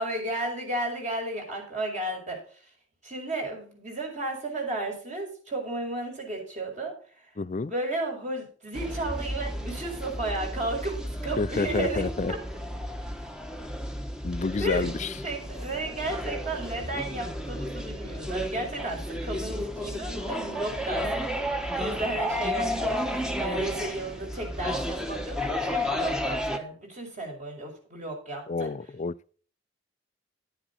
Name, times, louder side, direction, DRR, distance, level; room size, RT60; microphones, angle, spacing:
voice 1, 0.0-2.7 3.0-7.3 7.7-12.0 14.6-14.8 15.2-28.7, right 2 dB, 40° right, 5.2 m, -33 dB
voice 2, 7.4-7.7 11.4-12.3 14.2-15.1 28.5-29.1, left 4 dB, 40° left, 0.4 m, -29 dB
sound 1, 8.7-26.6, left 1 dB, 5° right, 1.2 m, -32 dB
11.0 x 9.9 x 4.1 m
head